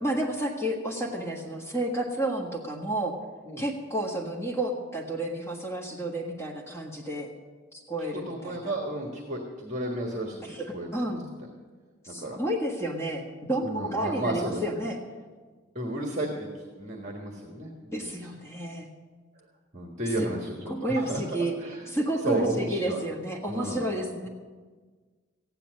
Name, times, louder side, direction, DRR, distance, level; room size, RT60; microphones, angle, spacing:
voice 1, 0.0-3.1 3.6-7.3 7.7-8.7 10.4-11.2 12.0-13.2 13.5-15.0 17.9-18.9 20.2-20.3 20.7-21.5 21.9-24.3, right 1 dB, 15° left, -1 dB, 1.5 m, -31 dB
voice 2, 8.1-11.0 12.1-12.4 13.6-14.8 15.7-16.5 16.8-18.1 19.7-20.6 20.9-21.2 21.6-21.9 22.2-23.0 23.5-23.8, right 1 dB, 35° right, 1 dB, 1.5 m, -32 dB
15.0 x 10.0 x 6.4 m, 1.4 s
head